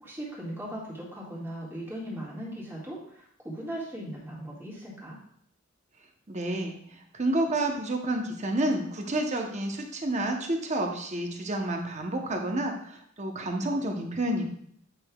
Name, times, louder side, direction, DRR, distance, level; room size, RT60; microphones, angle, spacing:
voice 1, 0.0-5.2, right 1 dB, 10° right, -5 dB, 1.9 m, -38 dB
voice 2, 6.3-6.8 7.1-14.5, right 1 dB, 35° right, 3 dB, 0.8 m, -29 dB
8.7 x 5.5 x 2.3 m, 0.67 s
head